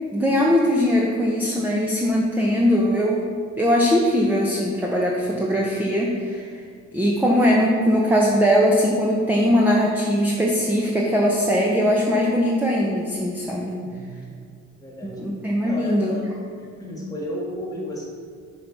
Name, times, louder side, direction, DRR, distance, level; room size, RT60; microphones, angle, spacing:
voice 1, 0.1-3.2 3.6-6.5 6.9-13.8 15.0-16.1, equal, 5° right, -2 dB, 0.8 m, -20 dB
voice 2, 13.8-14.3 14.8-15.2 15.6-16.3 16.6-18.1, equal, 10° left, -3 dB, 1.9 m, -34 dB
6.5 x 5.2 x 4.6 m, 2.2 s
cardioid pair, 90°, 30 cm